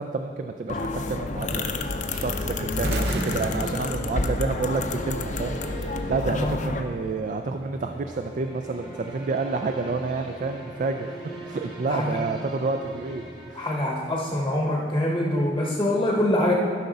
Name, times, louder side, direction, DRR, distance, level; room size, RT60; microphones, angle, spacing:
voice 1, 0.0-1.6 2.1-5.6 5.8-11.2 11.4-13.7, right 3 dB, 45° right, 6 dB, 0.3 m, -29 dB
sound 1, 0.7-6.8, left 2 dB, 40° left, 0.5 m, -29 dB
sound 2, 1.6-14.4, right 1 dB, 25° right, 1.5 m, -41 dB
sound 3, 2.8-4.9, right 2 dB, 60° right, 0.7 m, -33 dB
voice 2, 6.3-6.6 11.9-12.2 13.5-16.5, left 1 dB, 20° left, -2 dB, 0.9 m, -24 dB
12.5 x 5.5 x 3.9 m, 2.2 s
head